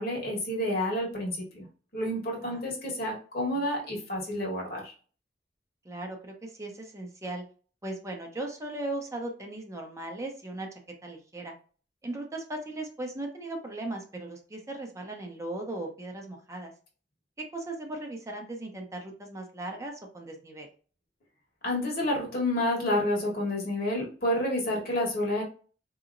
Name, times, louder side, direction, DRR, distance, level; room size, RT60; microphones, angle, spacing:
voice 1, 0.0-1.6 1.9-4.9 21.6-25.4, left 1 dB, 60° left, 0 dB, 1.4 m, -29 dB
voice 2, 5.8-7.4 7.8-10.7 11.0-11.5 12.0-16.7 17.4-20.7, right 2 dB, 20° right, 2 dB, 0.6 m, -37 dB
4.0 x 2.9 x 2.5 m, 0.40 s
head